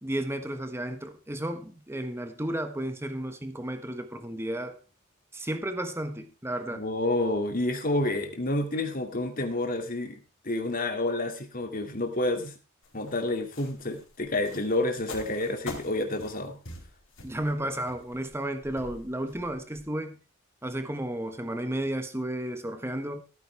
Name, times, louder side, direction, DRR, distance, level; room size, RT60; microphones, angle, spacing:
voice 1, 0.0-4.8 5.3-6.8 17.2-20.2 20.6-23.2, right 1 dB, 15° right, 1.3 m, -33 dB
voice 2, 6.7-10.2 10.4-12.5 12.9-16.6, left 2 dB, 45° left, 2.3 m, -29 dB
sound 1, 12.8-19.8, left 2 dB, 85° left, 4.6 m, -45 dB
15.5 x 9.5 x 3.4 m
head